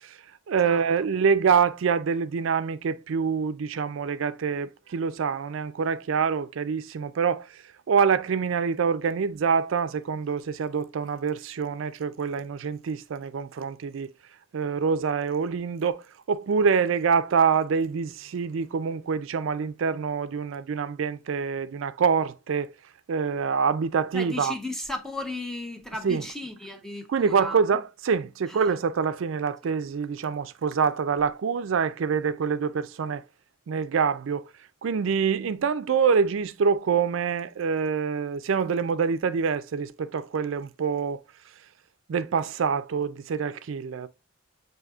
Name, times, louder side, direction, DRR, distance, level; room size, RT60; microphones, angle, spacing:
voice 1, 0.5-7.5 7.9-14.1 14.5-16.0 16.3-22.7 23.1-24.5 26.0-26.2 27.1-33.2 33.7-34.4 34.8-41.2 42.1-44.1, right 6 dB, 65° right, 0.4 m, -25 dB
voice 2, 24.1-27.6 28.5-28.7 29.6-29.7, left 2 dB, ahead, 0.7 m, -35 dB
7.8 x 2.7 x 2.3 m
head